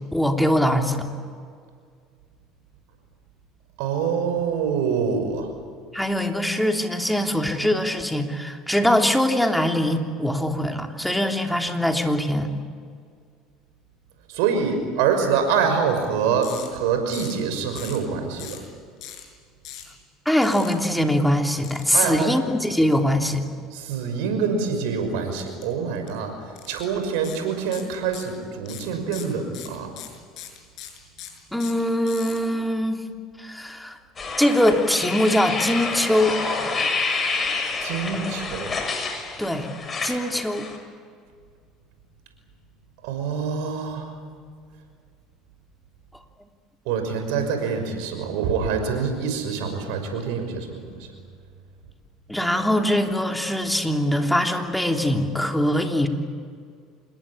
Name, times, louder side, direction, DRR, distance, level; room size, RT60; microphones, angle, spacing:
voice 1, 0.1-1.1 5.9-12.5 20.2-23.4 31.5-33.0 33.4-34.0 34.4-36.4 39.4-39.7 40.0-40.7 52.3-56.1, left 1 dB, 5° left, 3 dB, 3.2 m, -22 dB
voice 2, 3.8-5.5 14.3-18.6 21.9-22.4 23.7-26.3 26.7-29.9 37.8-38.7 43.0-44.1 46.9-51.1, right 6 dB, 75° right, 6 dB, 5.9 m, -25 dB
sound 1, 16.4-16.7 17.1-17.4 17.8-18.0 18.4-18.7 19.0-19.2 19.6-19.9 20.4-20.7 21.6-22.2 25.4-25.6 26.0-26.1 26.6-26.9 27.2-27.4 27.7-28.4 28.7-32.4, left 11 dB, 60° left, 6.6 m, -40 dB
sound 2, 34.2-40.8, left 4 dB, 30° left, 6.9 m, -28 dB
27.5 x 21.0 x 8.9 m, 2.1 s
hypercardioid pair, 80°, 0 cm